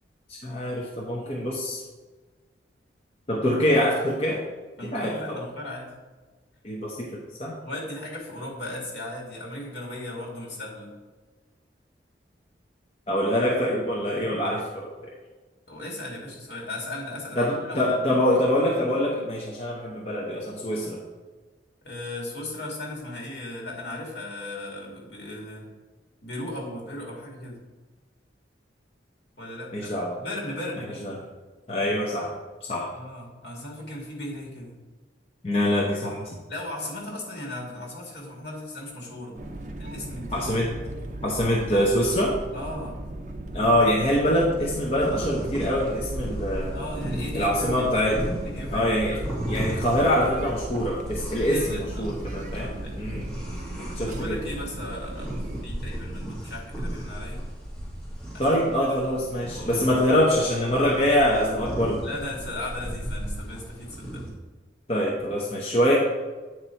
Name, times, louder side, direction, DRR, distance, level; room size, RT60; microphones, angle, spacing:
voice 1, 0.3-1.8 3.3-4.4 4.9-5.5 6.6-7.5 13.1-15.1 17.4-21.0 29.7-30.1 31.0-31.2 31.7-32.3 32.7-32.9 35.4-36.2 40.3-40.7 41.2-42.4 43.5-46.8 47.3-48.3 48.7-49.2 49.5-52.7 53.0-53.3 54.0-54.4 58.4-62.0 64.9-66.0, equal, 35° left, -4 dB, 0.8 m, -24 dB
voice 2, 4.8-5.9 7.6-10.9 15.7-18.0 21.8-25.7 26.2-27.6 29.4-31.1 32.9-34.7 36.5-39.4 39.8-40.5 42.5-43.0 46.7-47.9 48.2-48.9 51.5-52.2 52.5-53.0 54.1-57.5 58.3-58.5 58.8-59.0 59.5-60.2 62.0-64.2, left 1 dB, 65° left, -3 dB, 2.1 m, -37 dB
sound 1, 39.3-55.6, right 1 dB, 40° right, 0.6 m, -37 dB
sound 2, 44.6-64.3, right 1 dB, 5° left, 2.3 m, -36 dB
8.8 x 4.2 x 4.5 m, 1.3 s
head